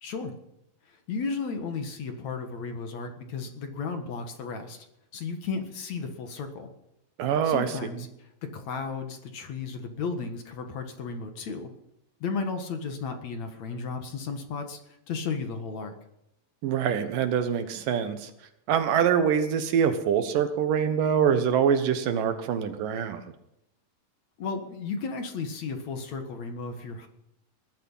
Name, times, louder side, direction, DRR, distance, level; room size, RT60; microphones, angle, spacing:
voice 1, 0.0-0.3 0.9-4.9 5.1-6.7 7.4-11.7 12.2-15.9 24.4-27.1, left 4 dB, 60° left, 6 dB, 2.7 m, -34 dB
voice 2, 7.2-7.7 16.6-18.3 18.7-23.2, right 8 dB, 75° right, 9 dB, 2.8 m, -24 dB
20.0 x 12.0 x 5.6 m, 0.82 s
omnidirectional pair, 4.0 m